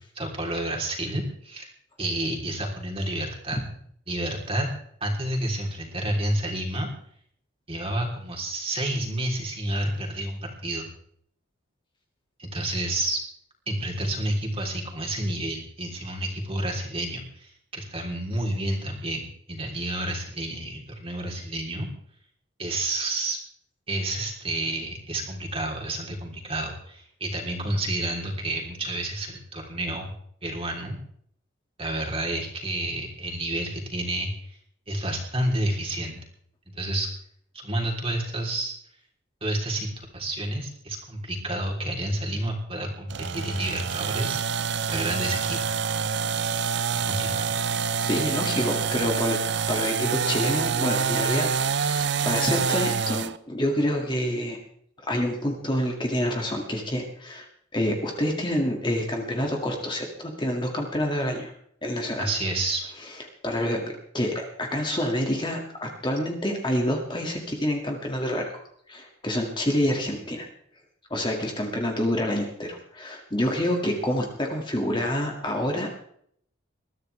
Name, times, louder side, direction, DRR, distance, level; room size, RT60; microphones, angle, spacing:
voice 1, 0.1-1.7 2.0-3.6 4.1-4.7 5.0-6.9 7.7-10.9 12.4-13.2 13.7-21.9 22.6-23.4 23.9-30.1 30.4-31.0 31.8-34.6 34.9-36.2 36.7-37.1 37.6-38.7 39.4-44.4 44.9-45.6 47.1-47.5 62.2-62.9, right 1 dB, 25° right, 0 dB, 3.4 m, -30 dB
sound 1, 43.1-53.4, right 6 dB, 55° right, 0.6 m, -26 dB
voice 2, 48.0-49.4 49.7-54.6 55.1-57.5 57.7-61.5 61.8-62.3 63.4-68.6 68.9-70.5 71.1-75.9, left 1 dB, 25° left, 1 dB, 2.1 m, -27 dB
21.5 x 14.0 x 3.3 m, 0.65 s
head